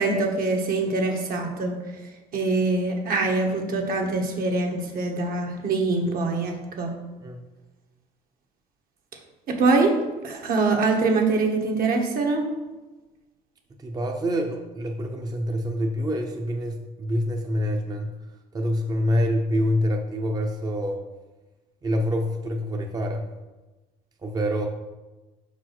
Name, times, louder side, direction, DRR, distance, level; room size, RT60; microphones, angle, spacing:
voice 1, 0.0-1.8 2.3-6.9 9.5-12.5, right 3 dB, 60° right, 2 dB, 1.4 m, -24 dB
voice 2, 13.8-18.1 18.5-21.0 21.8-23.3 24.2-24.7, equal, 25° right, 2 dB, 0.7 m, -26 dB
5.6 x 5.1 x 5.9 m, 1.2 s
cardioid pair, 110°, 17 cm